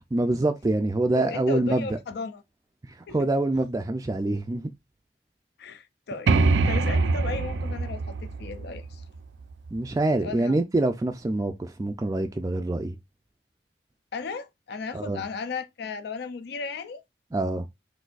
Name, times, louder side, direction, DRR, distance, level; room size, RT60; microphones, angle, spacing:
voice 1, 0.1-2.0 2.9-4.7 9.7-13.0 14.9-15.2 17.3-17.7, right 2 dB, 20° right, 0.3 m, -25 dB
voice 2, 1.1-2.4 3.1-3.2 5.6-9.0 10.2-10.6 14.1-17.0, left 4 dB, 65° left, 0.5 m, -35 dB
sound 1, 6.3-9.9, right 3 dB, 90° right, 0.5 m, -25 dB
6.1 x 2.6 x 2.4 m
head